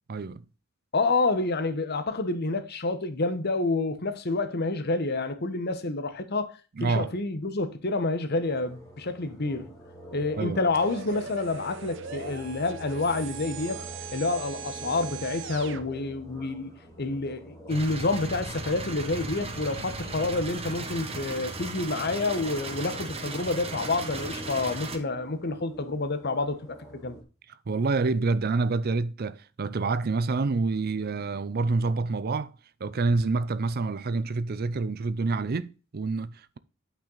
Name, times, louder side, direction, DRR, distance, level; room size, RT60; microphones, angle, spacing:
voice 1, 0.1-0.4 6.8-7.1 10.4-10.6 27.7-32.5 32.8-36.6, right 3 dB, 50° right, 0.5 m, -27 dB
voice 2, 0.9-9.7 10.1-13.8 14.1-26.6 27.0-27.2, left 3 dB, 55° left, 1.1 m, -28 dB
sound 1, 8.4-27.2, equal, 15° left, 2.5 m, -46 dB
sound 2, 10.7-15.8, right 7 dB, 65° right, 0.9 m, -40 dB
sound 3, 17.7-25.0, right 3 dB, 30° right, 1.3 m, -36 dB
8.8 x 5.8 x 3.9 m
head